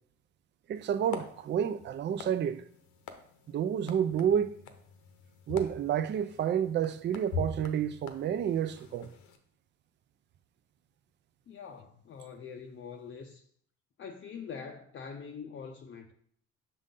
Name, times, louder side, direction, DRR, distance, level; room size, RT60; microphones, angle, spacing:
sound 1, 0.7-9.4, left 4 dB, 75° left, 0.9 m, -44 dB
voice 1, 0.7-2.6 3.5-4.5 5.5-9.1, right 9 dB, 35° right, 0.4 m, -30 dB
voice 2, 11.5-13.4 14.0-16.1, left 6 dB, 40° left, 0.6 m, -44 dB
6.4 x 3.9 x 3.7 m
supercardioid pair, 85°, 30 cm